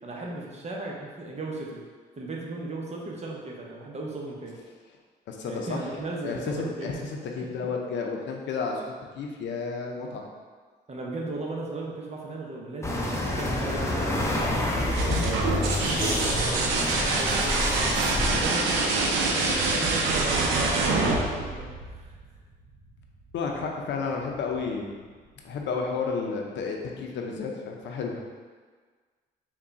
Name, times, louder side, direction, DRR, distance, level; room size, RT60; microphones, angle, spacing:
voice 1, 0.0-1.8 2.2-4.5 5.4-6.9 10.9-16.2 16.5-18.0 18.4-22.1, right 2 dB, 35° right, -3 dB, 0.8 m, -36 dB
voice 2, 5.3-5.9 6.2-10.3 23.3-25.0 25.4-28.2, left 4 dB, 70° left, 1 dB, 0.6 m, -32 dB
sound 1, 12.8-18.5, left 1 dB, 15° left, 0.6 m, -28 dB
sound 2, 14.8-22.4 24.1-24.7, right 3 dB, 90° right, 0.5 m, -26 dB
3.5 x 2.3 x 4.0 m, 1.5 s
supercardioid pair, 65°, 20 cm